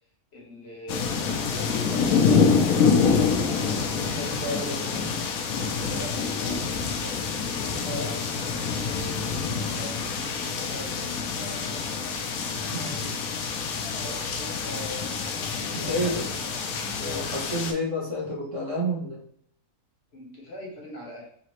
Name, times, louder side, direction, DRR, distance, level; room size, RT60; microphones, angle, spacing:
voice 1, 0.3-4.8 5.6-7.2 7.7-12.2 14.0-15.3 15.8-16.8 20.1-21.3, left 1 dB, 50° left, -2 dB, 1.2 m, -42 dB
sound 1, 0.9-17.7, left 5 dB, 80° left, 1.1 m, -26 dB
voice 2, 4.0-5.2 7.8-8.1 12.7-13.1 15.7-16.3 17.0-19.2, equal, 60° right, -4 dB, 1.5 m, -30 dB
4.1 x 2.8 x 3.0 m, 0.65 s
omnidirectional pair, 1.5 m